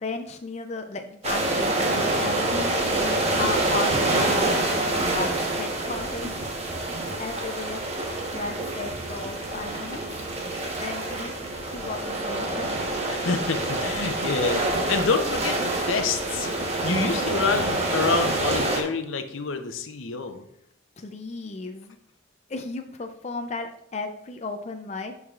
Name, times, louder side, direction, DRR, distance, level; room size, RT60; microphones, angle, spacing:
voice 1, 0.0-2.7 3.4-6.4 7.2-7.8 8.3-10.0 10.8-11.3 11.7-12.7 21.0-22.0 22.5-25.1, left 3 dB, 35° left, 5 dB, 0.4 m, -34 dB
sound 1, 1.2-18.8, right 2 dB, 30° right, 1.1 m, -26 dB
voice 2, 13.1-20.4, left 4 dB, 85° left, 7 dB, 0.7 m, -27 dB
11.0 x 4.7 x 2.4 m, 0.72 s
head